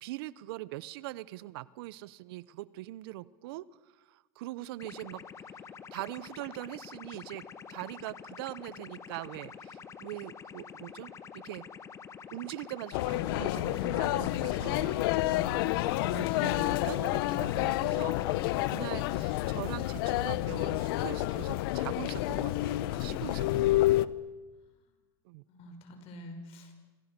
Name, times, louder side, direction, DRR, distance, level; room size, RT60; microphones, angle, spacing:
voice 1, 0.0-3.6 4.1-5.2 5.9-7.4 7.7-11.6 12.3-15.0 15.5-15.6 16.0-24.1 25.2-25.4, right 17 dB, 70° right, 19 dB, 0.9 m, -42 dB
sound 1, 4.8-18.8, left 6 dB, 25° left, 1.6 m, -47 dB
sound 2, 12.9-24.1, left 16 dB, 70° left, 1.0 m, -29 dB
voice 2, 24.5-24.9 25.5-26.7, equal, 50° left, 7 dB, 5.8 m, -49 dB
27.5 x 25.5 x 6.8 m, 1.2 s
supercardioid pair, 120°, 13 cm